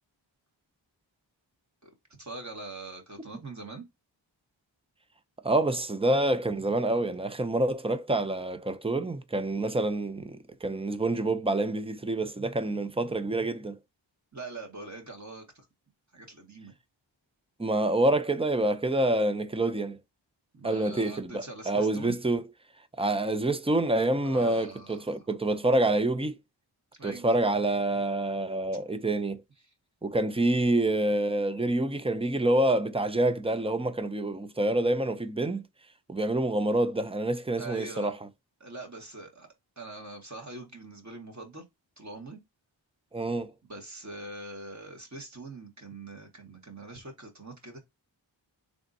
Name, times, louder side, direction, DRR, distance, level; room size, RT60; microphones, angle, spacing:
voice 1, 2.2-3.8 14.3-15.7 16.1-16.8 20.5-22.1 24.2-25.2 27.0-27.4 29.6-29.7 37.6-38.1 38.6-39.5 39.8-41.6 42.0-42.4 43.7-47.8, right 2 dB, 35° right, 1.6 m, -43 dB
voice 2, 5.4-13.8 17.6-20.0 20.6-22.4 23.0-26.4 27.0-29.4 30.0-35.6 36.1-38.2 43.1-43.5, right 2 dB, 10° right, 0.5 m, -27 dB
3.4 x 2.5 x 4.1 m
wide cardioid pair, 50°, 46 cm